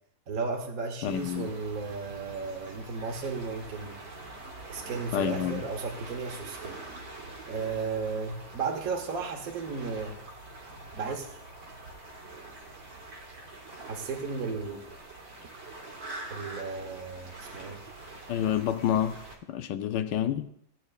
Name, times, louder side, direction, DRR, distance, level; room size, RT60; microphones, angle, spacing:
voice 1, 0.3-4.0 4.7-6.8 7.5-10.1 10.9-11.3 13.9-14.8 16.3-17.8, right 4 dB, 55° right, 1.4 m, -34 dB
voice 2, 1.0-1.5 5.1-5.6 18.3-19.2 19.5-20.5, left 10 dB, 75° left, 1.2 m, -28 dB
sound 1, 1.0-19.4, right 2 dB, 80° right, 2.3 m, -45 dB
16.5 x 8.5 x 2.4 m
omnidirectional pair, 2.0 m